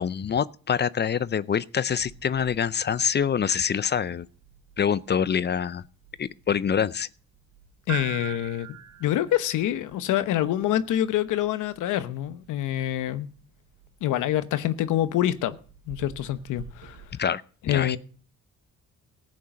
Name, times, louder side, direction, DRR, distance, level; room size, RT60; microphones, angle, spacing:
voice 1, 0.0-4.3 4.8-5.8 6.2-7.1 17.2-18.0, left 7 dB, 35° left, 0.5 m, -25 dB
sound 1, 1.9-17.0, right 9 dB, 75° right, 5.8 m, -45 dB
voice 2, 7.9-13.3 14.0-15.6 15.9-16.9 17.7-18.0, left 12 dB, 85° left, 1.0 m, -26 dB
14.5 x 8.6 x 6.3 m
cardioid pair, 90°, 30 cm